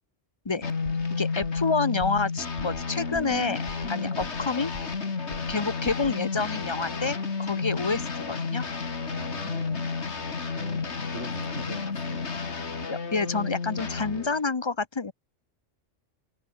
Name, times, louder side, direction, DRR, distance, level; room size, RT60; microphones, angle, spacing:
sound 1, 0.6-14.4, left 4 dB, 65° left, 2.3 m, -31 dB
sound 2, 0.9-1.1 1.4-1.7 2.0-2.3 2.6-2.8 3.1-3.4 3.7-4.5 4.7-5.0 5.3-5.6 5.9-6.2, equal, 5° left, 2.7 m, -44 dB
voice 1, 1.1-4.7 5.5-8.6 12.9-15.1, left 4 dB, 30° left, 0.6 m, -28 dB
voice 2, 9.1-9.9 10.6-12.3, right 2 dB, 70° right, 5.1 m, -42 dB
omnidirectional pair, 1.2 m